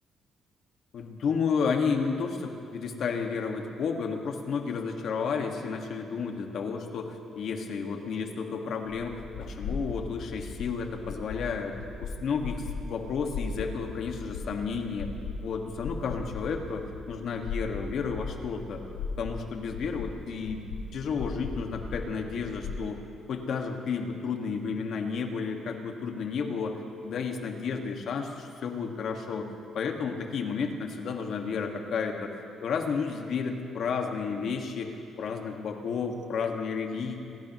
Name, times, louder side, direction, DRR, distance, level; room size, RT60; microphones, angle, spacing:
voice 1, 0.9-11.8 12.0-15.1 15.4-18.9 19.2-20.6 20.9-23.0 23.3-32.4 32.6-37.2, left 5 dB, 65° left, 3 dB, 1.8 m, -32 dB
sound 1, 8.9-22.9, left 4 dB, 90° left, 1.3 m, -38 dB
28.0 x 16.5 x 3.1 m, 2.5 s
cardioid pair, 100°, 0 cm